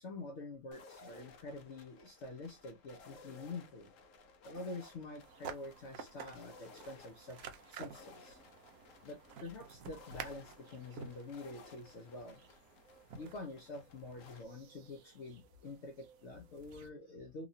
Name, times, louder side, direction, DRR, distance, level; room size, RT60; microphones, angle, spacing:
voice 1, 0.0-3.9 4.4-7.4 7.7-8.4 9.0-12.4 13.1-17.5, left 2 dB, 90° left, 0.6 m, -47 dB
sound 1, 0.7-14.4, left 3 dB, 65° left, 0.8 m, -58 dB
sound 2, 5.2-16.9, right 6 dB, 70° right, 0.8 m, -52 dB
2.9 x 2.9 x 2.6 m
omnidirectional pair, 2.0 m